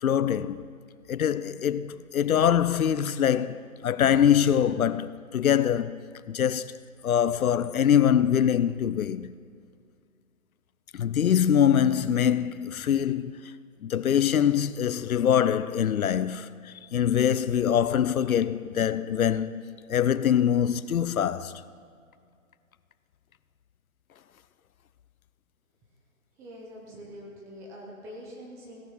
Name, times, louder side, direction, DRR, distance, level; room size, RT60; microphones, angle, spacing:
voice 1, 0.0-0.6 1.1-6.0 6.3-6.8 7.0-9.3 10.9-13.3 13.8-21.5, left 9 dB, 85° left, 0.6 m, -24 dB
voice 2, 26.3-28.8, equal, 5° right, 0.6 m, -44 dB
17.0 x 6.2 x 5.8 m
hypercardioid pair, 145°, 42 cm